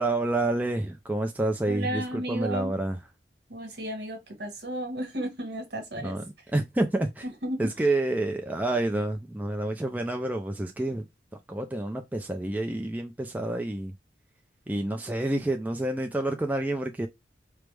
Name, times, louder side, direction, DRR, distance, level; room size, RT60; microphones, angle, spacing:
voice 1, 0.0-3.0 6.0-6.2 6.5-7.2 7.6-11.0 11.5-13.9 14.7-17.1, right 2 dB, 10° right, 0.3 m, -28 dB
voice 2, 1.7-2.8 3.5-6.2 7.4-7.7, right 1 dB, 65° right, 1.4 m, -33 dB
4.6 x 2.0 x 3.3 m
head